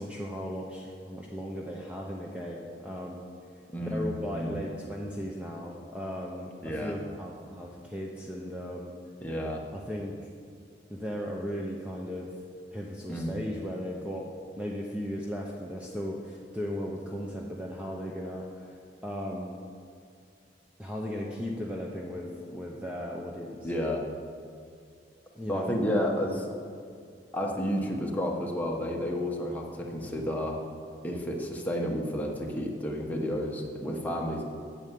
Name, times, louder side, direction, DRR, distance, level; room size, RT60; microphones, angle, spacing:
voice 1, 0.0-3.2 3.9-8.9 9.7-10.1 10.9-12.3 12.7-14.3 14.6-18.8 19.0-19.6 20.8-23.7 25.3-25.7, equal, 5° right, -2 dB, 0.8 m, -36 dB
voice 2, 3.7-4.6 6.6-7.0 9.2-9.6 13.1-13.4 23.6-24.0 25.5-26.5 27.3-30.6 31.0-34.4, equal, 10° left, -1 dB, 1.3 m, -31 dB
8.9 x 8.1 x 7.6 m, 2.4 s
head